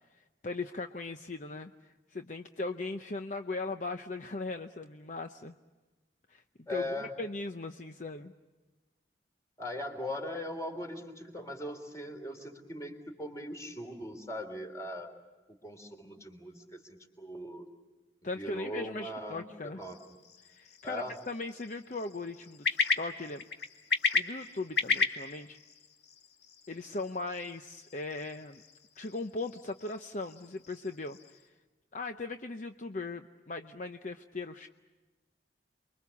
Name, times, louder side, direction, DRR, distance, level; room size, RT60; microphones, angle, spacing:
voice 1, 0.1-5.5 6.3-6.4 6.7-8.3 18.2-19.8 20.4-23.4 24.1-25.6 26.7-28.6 29.0-31.2 31.5-31.6 31.9-34.7, left 3 dB, 45° left, 7 dB, 0.7 m, -39 dB
voice 2, 6.7-7.1 9.6-15.1 15.6-17.6 18.4-20.0 20.8-21.2, left 1 dB, 15° left, 5 dB, 3.4 m, -39 dB
quail with crickets, 19.8-31.5, left 4 dB, 70° left, 2.2 m, -36 dB
29.0 x 23.5 x 7.1 m, 1.2 s
head